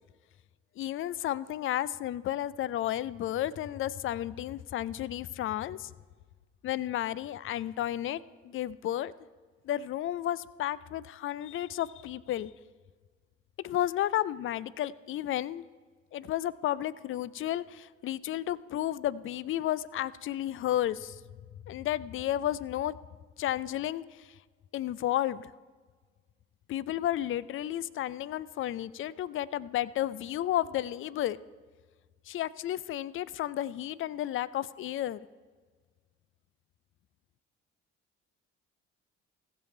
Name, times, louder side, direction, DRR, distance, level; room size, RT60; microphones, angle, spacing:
voice 1, 0.8-5.9 6.6-9.1 9.6-12.5 13.6-15.6 16.1-21.2 21.7-22.9 23.4-24.3 24.7-25.5 26.7-31.4 32.3-35.2, left 12 dB, 35° left, 19 dB, 0.4 m, -32 dB
15.5 x 7.4 x 4.4 m, 1.5 s
figure-of-eight pair, 45°, 36 cm